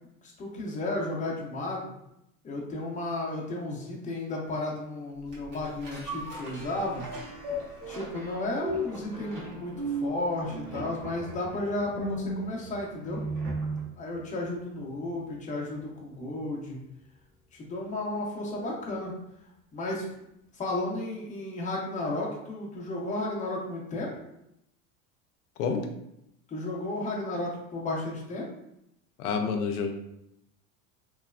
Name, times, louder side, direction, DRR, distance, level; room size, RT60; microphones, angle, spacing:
voice 1, 0.2-1.9 2.4-7.0 7.9-13.2 14.0-16.8 17.5-19.1 19.7-20.0 20.6-24.1 26.5-28.4, left 2 dB, 15° left, -2 dB, 0.7 m, -33 dB
sound 1, 5.3-13.9 14.3-14.4, right 1 dB, 45° right, 1.4 m, -36 dB
voice 2, 29.2-29.9, left 5 dB, 85° left, 5 dB, 0.5 m, -28 dB
3.1 x 2.0 x 2.4 m, 0.80 s
hypercardioid pair, 100°, 44 cm